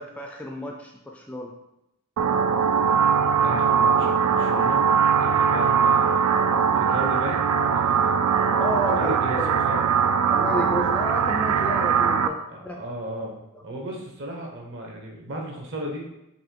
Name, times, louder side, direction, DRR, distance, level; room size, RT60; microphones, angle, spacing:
voice 1, 0.0-1.5 5.5-5.7 8.6-9.6 10.3-12.8, equal, 5° left, 1 dB, 0.3 m, -31 dB
sound 1, 2.2-12.3, right 6 dB, 80° right, 0.3 m, -21 dB
voice 2, 3.4-4.8 5.2-6.2 6.7-8.3 9.0-9.8 12.5-16.1, right 1 dB, 60° right, 0 dB, 0.9 m, -35 dB
4.1 x 2.9 x 4.5 m, 0.87 s
head